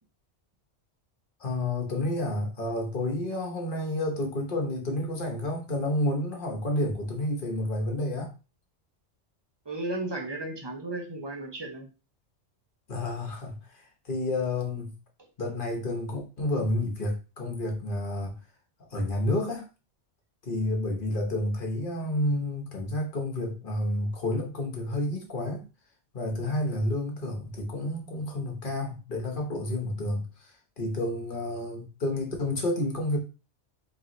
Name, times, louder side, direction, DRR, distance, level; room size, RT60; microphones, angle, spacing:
voice 1, 1.4-8.3 12.9-14.9 15.4-18.4 18.9-19.6 20.4-25.7 26.1-33.2, left 1 dB, 50° left, 1.1 m, -30 dB
voice 2, 9.6-11.9, right 2 dB, 25° right, 0.8 m, -34 dB
3.4 x 3.0 x 3.8 m
omnidirectional pair, 1.2 m